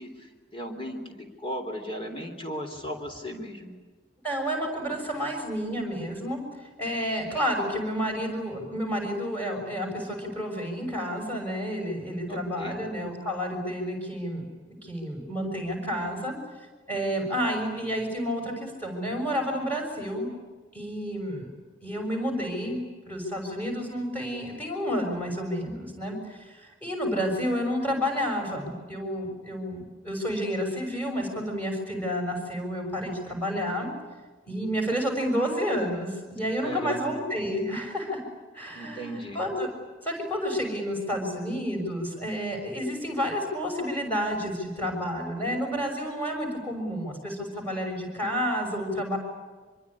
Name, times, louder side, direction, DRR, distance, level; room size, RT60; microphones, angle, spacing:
voice 1, 0.0-3.8 12.3-12.8 36.6-37.1 38.7-39.4, equal, 25° left, 5 dB, 3.6 m, -36 dB
voice 2, 4.2-16.4 16.9-20.3 20.7-21.5 21.8-33.9 34.4-38.2 38.5-39.7 40.0-49.2, equal, 10° left, 2 dB, 6.4 m, -30 dB
25.0 x 23.0 x 9.9 m, 1.4 s
head